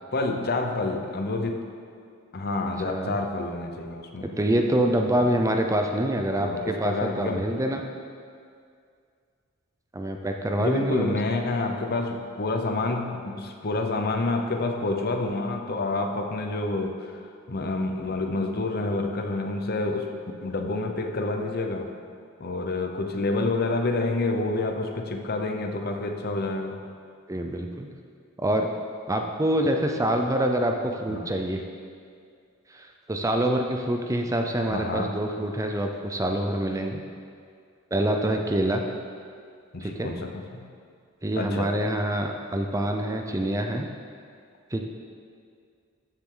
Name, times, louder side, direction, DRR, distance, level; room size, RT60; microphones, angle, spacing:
voice 1, 0.1-1.6 2.3-4.3 5.2-5.4 6.4-7.4 10.6-17.2 17.5-20.1 20.4-21.9 22.4-26.8 31.1-31.3 34.7-35.1 39.7-40.7 41.4-41.7, left 2 dB, 50° left, 4 dB, 0.8 m, -28 dB
voice 2, 2.9-3.2 4.4-7.8 9.9-11.2 27.3-27.9 28.4-28.7 29.1-31.6 32.7-37.0 37.9-38.8 39.8-40.1 41.2-43.8 44.7-44.8, right 1 dB, 15° right, 3 dB, 0.6 m, -26 dB
13.5 x 7.4 x 3.9 m, 2.2 s
head